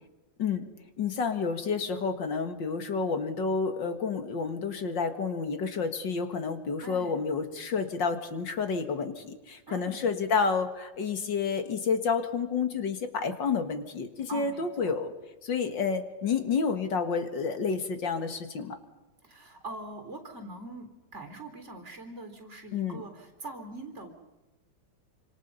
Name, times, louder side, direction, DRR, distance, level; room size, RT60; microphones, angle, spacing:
voice 1, 1.0-15.1 15.4-18.8 22.7-23.0, left 5 dB, 70° left, 7 dB, 2.4 m, -30 dB
voice 2, 6.8-7.2 9.7-10.1 14.3-14.9 19.2-24.1, right 2 dB, 35° right, 5 dB, 4.0 m, -43 dB
27.5 x 26.5 x 5.5 m, 1.1 s
omnidirectional pair, 2.1 m